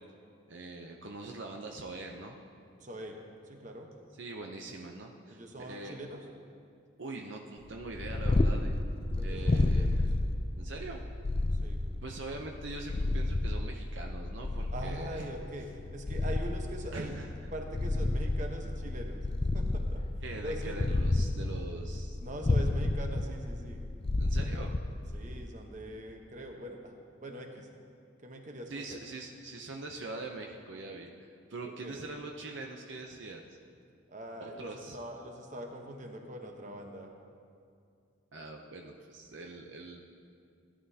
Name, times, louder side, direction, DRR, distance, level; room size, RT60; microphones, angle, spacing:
voice 1, 0.5-2.4 4.2-6.0 7.0-8.7 9.2-10.1 10.6-11.0 12.0-15.3 16.9-17.3 20.2-22.2 24.2-24.7 28.7-33.5 34.4-35.0 38.3-40.0, right 2 dB, 65° right, 2 dB, 0.7 m, -43 dB
voice 2, 2.8-3.2 3.4-3.9 5.3-6.3 9.2-10.1 11.5-11.8 14.6-17.2 17.5-19.3 19.5-20.0 20.4-20.8 22.2-23.8 25.1-26.9 27.2-27.7 28.2-29.0 31.6-32.0 34.1-37.1, right 1 dB, 35° right, 2 dB, 1.0 m, -42 dB
Purr, 7.8-25.5, left 2 dB, 25° left, 0.4 m, -31 dB
17.0 x 11.0 x 2.8 m, 2.3 s
head